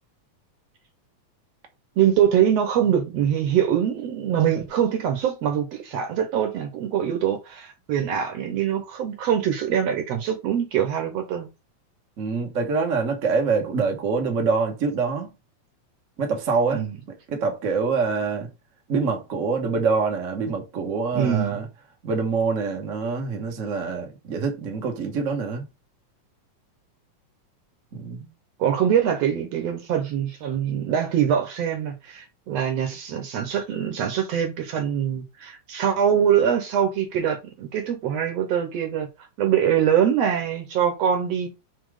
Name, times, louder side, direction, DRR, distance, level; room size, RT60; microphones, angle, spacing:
voice 1, 2.0-11.5 16.7-17.0 21.1-21.6 28.6-39.1 39.4-41.5, right 9 dB, 65° right, 1.9 m, -23 dB
voice 2, 12.2-15.3 16.2-16.8 17.3-18.5 18.9-21.6 22.0-25.7 27.9-28.3, right 4 dB, 50° right, 0.9 m, -25 dB
4.8 x 4.3 x 4.9 m
omnidirectional pair, 3.6 m